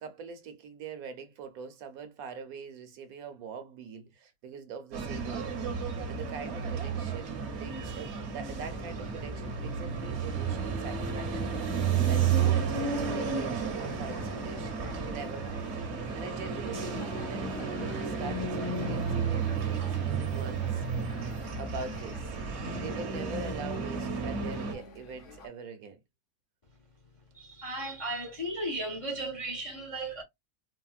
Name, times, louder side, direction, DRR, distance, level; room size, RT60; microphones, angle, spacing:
voice 1, 0.0-14.7 15.0-15.6 16.1-20.8 21.6-22.4 22.8-26.0, right 5 dB, 75° right, 1.2 m, -43 dB
sound 1, 4.9-24.7, right 6 dB, 55° right, 0.9 m, -32 dB
sound 2, 12.8-25.5, left 3 dB, 60° left, 1.0 m, -48 dB
voice 2, 27.3-30.2, right 1 dB, 40° left, 0.4 m, -35 dB
4.1 x 2.1 x 2.4 m
omnidirectional pair, 1.6 m